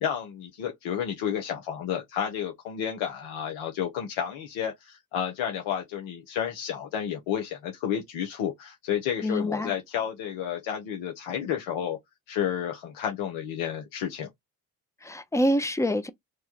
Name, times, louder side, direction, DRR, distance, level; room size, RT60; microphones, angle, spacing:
voice 1, 0.0-12.0 12.3-14.3, left 9 dB, 75° left, 1.0 m, -31 dB
voice 2, 9.2-9.7 15.0-16.1, equal, 5° left, 0.6 m, -26 dB
3.2 x 2.3 x 4.3 m
supercardioid pair, 55°, 48 cm